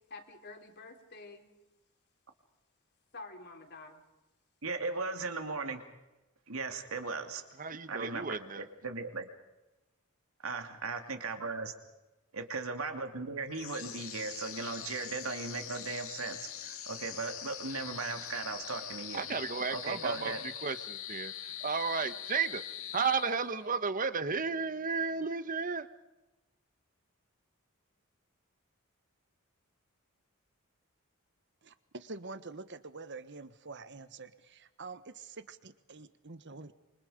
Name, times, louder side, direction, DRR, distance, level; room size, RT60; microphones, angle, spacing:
voice 1, 0.1-1.5 3.1-4.0, left 3 dB, 50° left, 4 dB, 3.4 m, -48 dB
voice 2, 4.6-5.8 6.5-7.4 7.9-9.3 10.4-11.7 12.3-19.2 19.7-20.4, right 3 dB, 75° right, 6 dB, 2.8 m, -37 dB
voice 3, 7.6-8.6 19.1-20.3 20.6-21.3 21.6-22.6 22.9-25.9, right 5 dB, 40° right, 12 dB, 1.2 m, -33 dB
sound 1, 13.5-23.8, left 10 dB, 65° left, 2.3 m, -43 dB
voice 4, 31.6-36.7, right 3 dB, 55° right, 12 dB, 1.4 m, -46 dB
27.0 x 25.5 x 5.1 m, 1.0 s
head